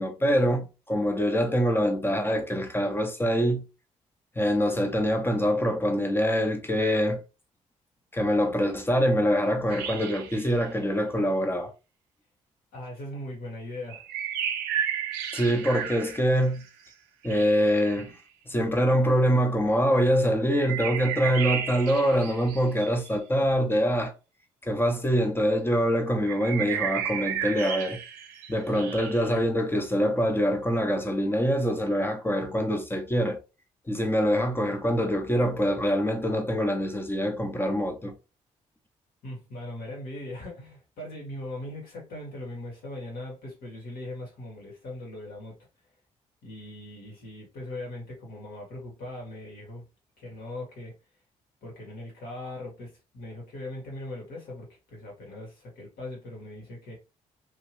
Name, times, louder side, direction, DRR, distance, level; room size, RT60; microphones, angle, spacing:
voice 1, 0.0-3.6 4.4-7.2 8.1-11.7 15.3-16.6 17.2-18.2 18.5-24.1 24.6-28.0 28.5-33.4 33.9-38.1, equal, 15° left, 1.0 m, -24 dB
sound 1, 9.7-10.5 13.9-16.6 17.2-18.1 20.5-23.1 26.3-29.3, right 9 dB, 80° right, 0.6 m, -33 dB
voice 2, 12.7-14.1 39.2-45.6 46.4-49.8 50.2-50.9 51.6-57.0, left 1 dB, 70° left, 2.0 m, -40 dB
3.2 x 2.9 x 3.1 m
hypercardioid pair, 45°, 16 cm